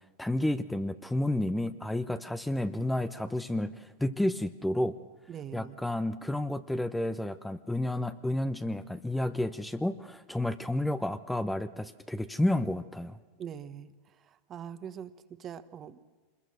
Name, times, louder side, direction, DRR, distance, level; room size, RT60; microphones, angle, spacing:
voice 1, 0.2-5.0 5.5-13.2, left 1 dB, 5° left, 11 dB, 0.9 m, -31 dB
voice 2, 5.3-5.8 13.4-13.9 14.5-16.0, right 8 dB, 35° right, 12 dB, 1.3 m, -42 dB
26.0 x 21.5 x 6.4 m, 1.4 s
hypercardioid pair, 100°, 0 cm